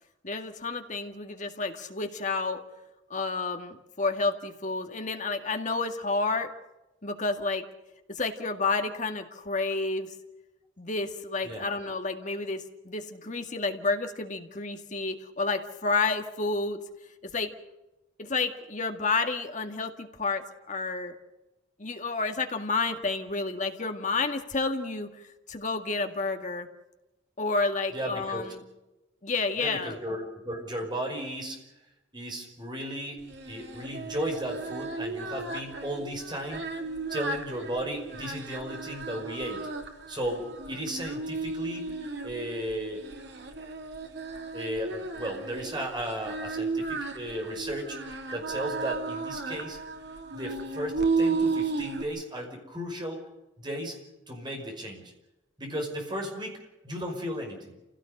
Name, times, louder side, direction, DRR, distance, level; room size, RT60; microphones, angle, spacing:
voice 1, 0.2-2.6 3.1-6.5 7.0-7.6 8.1-10.1 10.8-16.8 17.3-17.5 18.2-21.2 21.8-25.1 25.5-26.7 27.4-28.6 29.2-30.0, left 3 dB, 40° left, 5 dB, 2.0 m, -30 dB
voice 2, 27.9-28.5 29.6-31.6 32.1-36.7 37.1-39.7 40.1-41.9 42.2-43.0 44.5-49.8 50.3-53.2 53.6-54.0 54.3-55.1 55.6-57.8, equal, 25° right, 2 dB, 5.5 m, -35 dB
Singing, 33.3-52.0, right 3 dB, 60° right, 2.8 m, -34 dB
28.5 x 17.0 x 6.6 m, 0.98 s
head